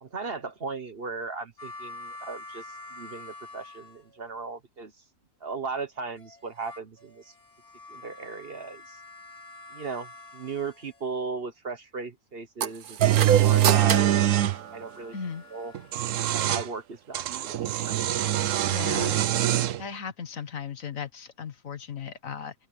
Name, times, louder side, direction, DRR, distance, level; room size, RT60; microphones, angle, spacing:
voice 1, 0.0-2.6 2.9-4.9 5.4-7.3 7.9-9.0 9.7-15.1 15.5-15.7 16.3-17.9, right 4 dB, 45° right, 1.3 m, -37 dB
sound 1, 1.6-4.4 6.2-11.4 13.3-16.1 17.8-18.3, left 2 dB, 85° left, 4.8 m, -47 dB
sound 2, 12.6-15.3, right 9 dB, 85° right, 1.6 m, -27 dB
sound 3, 13.0-14.6 15.7-16.7 17.1-19.8, right 12 dB, 65° right, 1.0 m, -24 dB
voice 2, 15.1-15.4 18.7-19.2 19.8-22.5, left 7 dB, 65° left, 1.7 m, -36 dB
omnidirectional pair, 1.5 m